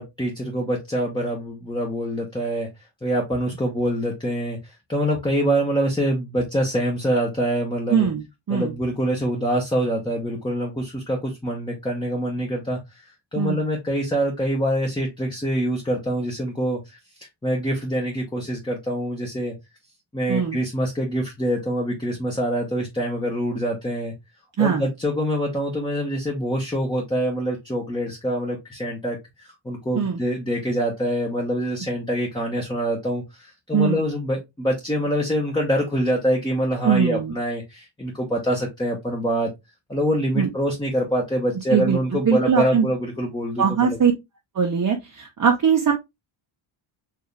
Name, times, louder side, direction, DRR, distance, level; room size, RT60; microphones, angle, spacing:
voice 1, 0.0-2.7 3.0-8.1 8.5-12.8 13.3-19.6 20.1-24.1 24.6-39.5 39.9-44.0, equal, 10° left, 1.0 m, -25 dB
voice 2, 7.9-8.2 8.5-8.7 13.4-13.6 20.3-20.6 24.6-24.8 29.9-30.2 33.7-34.0 36.8-37.3 40.4-40.5 41.7-42.9 43.6-44.1 44.5-45.9, right 7 dB, 40° right, 0.9 m, -21 dB
4.7 x 2.8 x 3.3 m
cardioid pair, 110°, 50 cm